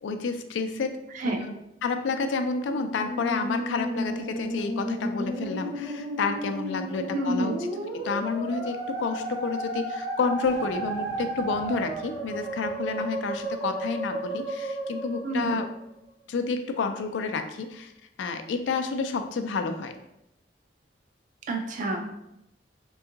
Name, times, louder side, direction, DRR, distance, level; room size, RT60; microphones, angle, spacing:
voice 1, 0.0-1.0 1.2-1.5 1.8-7.5 7.9-15.7 16.3-17.9 18.2-19.9, left 4 dB, 85° left, 7 dB, 0.3 m, -30 dB
Musical instrument, 2.7-16.1, right 1 dB, 80° right, 0.8 m, -33 dB
voice 2, 7.1-7.6 15.2-15.6 21.5-22.1, right 2 dB, 45° right, 3 dB, 0.3 m, -28 dB
Boom, 10.4-13.7, equal, 20° left, 0.6 m, -49 dB
3.4 x 2.3 x 2.8 m, 0.84 s
head